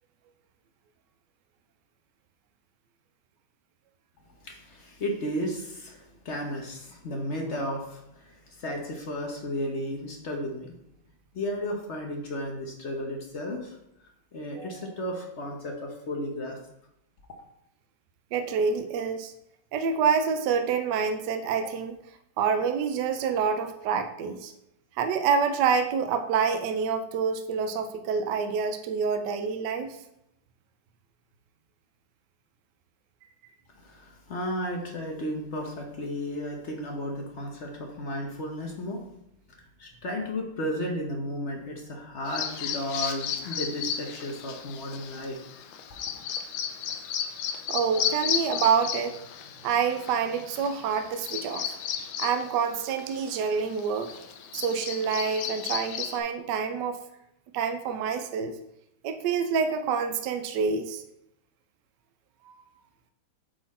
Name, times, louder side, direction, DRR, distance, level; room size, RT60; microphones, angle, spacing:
voice 1, 4.4-10.7 11.3-13.8 14.3-16.6 33.7-39.0 39.5-45.4, equal, 50° left, 1 dB, 0.8 m, -34 dB
voice 2, 14.5-14.9 18.3-19.3 19.7-22.0 22.4-24.5 25.0-30.0 47.7-49.2 49.6-51.7 52.2-54.1 54.5-57.0 57.5-58.6 59.0-61.0 62.5-62.6, right 6 dB, 70° right, 7 dB, 1.0 m, -27 dB
Bird vocalization bird call bird song, 42.3-56.2, left 8 dB, 85° left, 1.5 m, -34 dB
8.4 x 4.0 x 4.2 m, 0.80 s
omnidirectional pair, 2.3 m